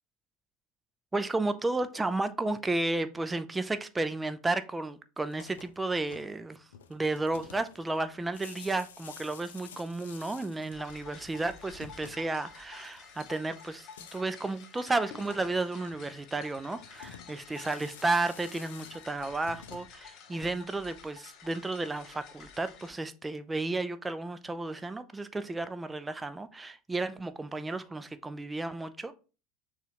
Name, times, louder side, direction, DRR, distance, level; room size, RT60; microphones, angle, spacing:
voice 1, 1.1-29.1, right 2 dB, 15° right, 0.5 m, -33 dB
sound 1, 5.2-20.9, left 7 dB, 70° left, 0.4 m, -52 dB
sound 2, 10.7-22.9, left 6 dB, 45° left, 0.8 m, -51 dB
6.6 x 2.4 x 3.0 m
figure-of-eight pair, 75°, 0 cm